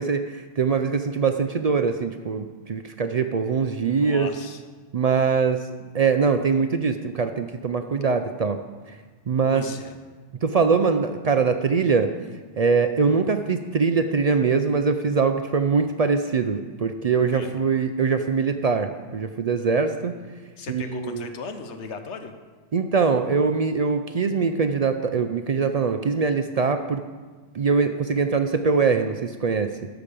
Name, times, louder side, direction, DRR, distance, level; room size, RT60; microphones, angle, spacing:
voice 1, 0.0-4.3 4.9-5.7 5.9-8.6 9.3-9.6 10.4-12.1 12.6-20.1 20.7-21.3 22.7-27.0 27.5-29.7, right 5 dB, 60° right, 7 dB, 0.4 m, -22 dB
voice 2, 3.8-4.6 9.5-10.0 17.3-17.5 20.6-22.3, left 5 dB, 75° left, 7 dB, 1.2 m, -37 dB
13.0 x 5.0 x 6.7 m, 1.4 s
omnidirectional pair, 1.2 m